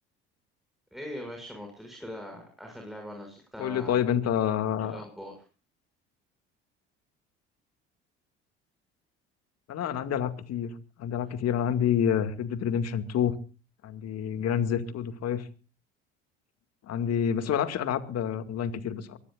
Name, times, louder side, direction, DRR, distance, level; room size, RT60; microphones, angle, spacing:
voice 1, 0.9-4.0 4.8-5.3, equal, ahead, 3 dB, 6.7 m, -41 dB
voice 2, 3.6-5.0 9.7-10.7 11.0-13.4 13.8-15.5 16.8-19.2, left 8 dB, 55° left, 10 dB, 2.2 m, -28 dB
24.0 x 18.0 x 2.5 m, 0.35 s
hypercardioid pair, 70°, 31 cm